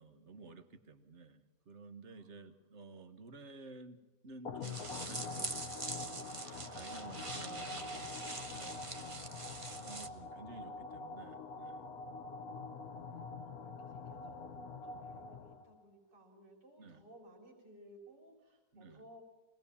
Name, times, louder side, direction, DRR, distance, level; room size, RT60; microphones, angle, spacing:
voice 1, 0.0-4.0 4.2-8.9 9.7-11.8 12.9-13.3 16.8-17.0 18.7-19.0, right 3 dB, 45° right, 9 dB, 1.7 m, -54 dB
voice 2, 2.1-2.8 6.9-8.0 8.4-9.3 12.0-12.8 13.4-19.2, right 1 dB, 80° right, 2 dB, 4.4 m, -61 dB
sound 1, 4.5-15.8, left 4 dB, 60° left, 1.4 m, -45 dB
sound 2, 4.6-10.1, right 2 dB, 25° right, 0.9 m, -44 dB
25.0 x 18.5 x 7.1 m, 1.1 s
omnidirectional pair, 1.8 m